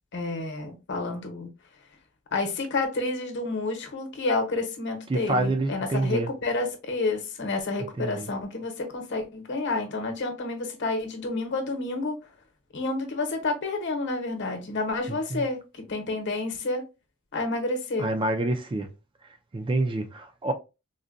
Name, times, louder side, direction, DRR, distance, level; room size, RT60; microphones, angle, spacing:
voice 1, 0.1-1.5 2.3-12.2 12.7-16.8 17.3-18.1, left 3 dB, 60° left, 0.9 m, -29 dB
voice 2, 5.1-6.3 8.0-8.3 15.1-15.4 18.0-18.9 19.5-20.5, right 2 dB, 25° right, 0.4 m, -27 dB
3.8 x 2.2 x 2.5 m
head